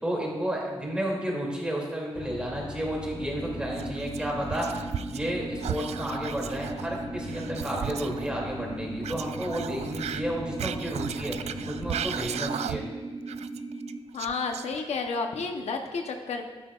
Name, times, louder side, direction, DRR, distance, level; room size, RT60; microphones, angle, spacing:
voice 1, 0.0-4.7 5.1-12.8, right 1 dB, 10° right, -3 dB, 2.7 m, -32 dB
sound 1, 2.1-12.2, left 4 dB, 30° left, 0.5 m, -42 dB
sound 2, 3.3-14.0, right 3 dB, 55° right, 1.0 m, -38 dB
Whispering, 3.7-5.3 5.6-8.3 9.0-13.0 13.3-15.1, right 9 dB, 85° right, 0.4 m, -36 dB
voice 2, 14.1-16.4, left 4 dB, 85° left, 4 dB, 0.9 m, -31 dB
12.0 x 10.5 x 2.5 m, 1.3 s
wide cardioid pair, 120°, 11 cm